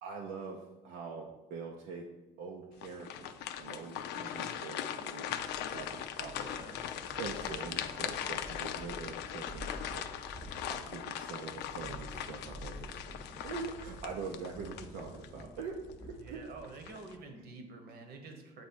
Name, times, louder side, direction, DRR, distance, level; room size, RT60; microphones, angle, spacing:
voice 1, 0.0-2.0 2.4-6.6 7.2-15.7 16.0-16.4, right 5 dB, 90° right, -1 dB, 0.7 m, -44 dB
sound 1, 2.8-15.4 15.9-16.0 16.6-17.1, left 10 dB, 85° left, 0.4 m, -40 dB
sound 2, 5.0-17.3, right 1 dB, 15° right, 0.8 m, -50 dB
voice 2, 6.3-6.8 16.2-18.6, right 3 dB, 70° right, 4 dB, 1.1 m, -48 dB
7.9 x 3.1 x 4.5 m, 1.1 s
cardioid pair, 110°, 17 cm